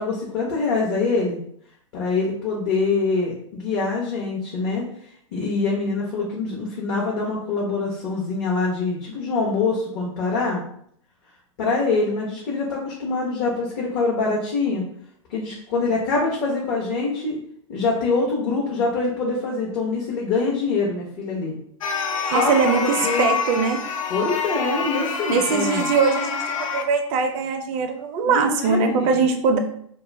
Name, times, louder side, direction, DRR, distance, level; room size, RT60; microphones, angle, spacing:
voice 1, 0.0-1.4 1.9-4.8 5.3-10.6 11.6-14.8 15.3-17.4 17.7-21.5 22.2-22.5 23.0-23.3 24.1-25.8 28.2-29.2, left 3 dB, 50° left, -4 dB, 0.8 m, -24 dB
sound 1, 21.8-26.8, left 5 dB, 80° left, 0.4 m, -27 dB
voice 2, 22.3-23.9 25.3-29.6, right 5 dB, 35° right, 4 dB, 0.4 m, -21 dB
2.3 x 2.2 x 3.2 m, 0.65 s
hypercardioid pair, 125°, 17 cm